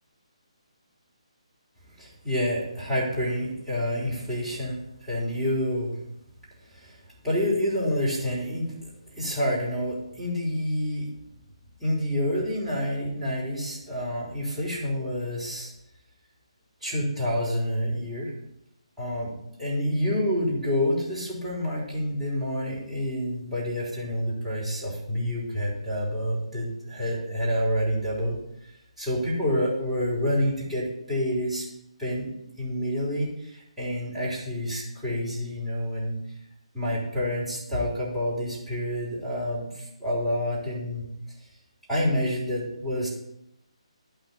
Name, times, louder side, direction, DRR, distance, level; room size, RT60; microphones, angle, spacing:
voice 1, 2.0-6.1 6.6-7.0 7.2-11.1 11.8-15.7 16.8-18.3 19.0-19.3 19.6-28.7 29.0-31.7 32.0-32.3 32.6-36.2 36.7-41.1 41.9-43.1, equal, 5° right, -9 dB, 3.3 m, -28 dB
11.5 x 5.8 x 4.3 m, 0.82 s
figure-of-eight pair, 145°, 4 cm